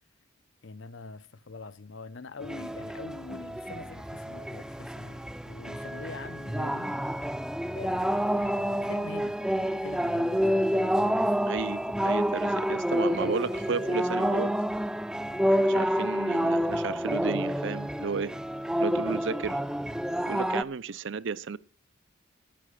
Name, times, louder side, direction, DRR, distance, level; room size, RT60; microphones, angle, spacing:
voice 1, 0.6-7.0 7.7-11.5, left 3 dB, 70° left, 0.8 m, -44 dB
sound 1, 2.4-20.6, equal, 5° right, 0.6 m, -28 dB
voice 2, 11.5-14.6 15.4-18.3 18.8-19.6 20.3-21.6, right 5 dB, 65° right, 0.6 m, -33 dB
13.5 x 8.6 x 6.5 m
head